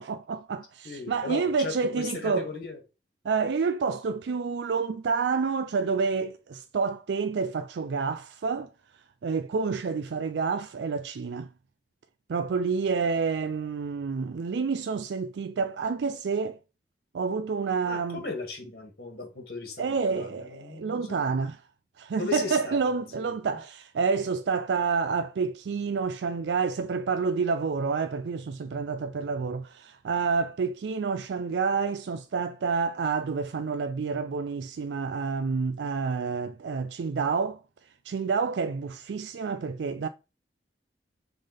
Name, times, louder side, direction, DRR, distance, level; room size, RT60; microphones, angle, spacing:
voice 1, 0.0-2.5 3.2-8.7 9.2-11.5 12.3-16.6 17.1-18.2 19.8-21.6 22.0-37.6 38.0-40.1, right 5 dB, 80° right, 0.4 m, -28 dB
voice 2, 0.8-2.8 17.8-21.4 22.2-23.0 23.5-23.6, left 3 dB, 55° left, 1.8 m, -37 dB
5.4 x 3.5 x 5.1 m
head